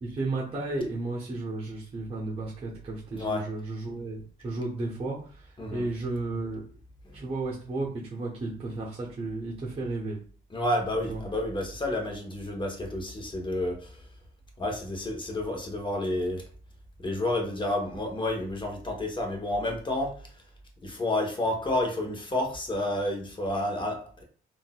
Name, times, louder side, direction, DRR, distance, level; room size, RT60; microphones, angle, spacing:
voice 1, 0.0-6.6 7.1-10.2 11.1-11.2, right 2 dB, 30° right, -5 dB, 0.9 m, -33 dB
voice 2, 3.1-3.5 5.6-5.9 7.0-7.2 10.5-14.0 14.6-16.4 17.0-20.1 20.8-24.2, left 1 dB, 25° left, 1 dB, 1.0 m, -30 dB
3.8 x 2.5 x 2.2 m, 0.42 s
cardioid pair, 90°, 20 cm